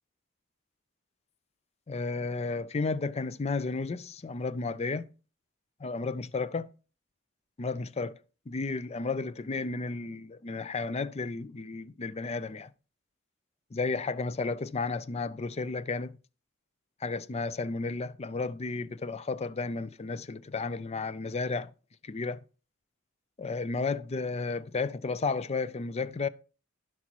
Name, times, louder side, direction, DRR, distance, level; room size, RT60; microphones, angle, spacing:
voice 1, 1.9-5.1 5.8-6.7 7.6-8.2 8.5-12.7 13.7-16.2 17.0-21.7 22.0-22.4 23.4-26.3, left 4 dB, 30° left, 0.5 m, -33 dB
15.5 x 6.1 x 3.0 m
head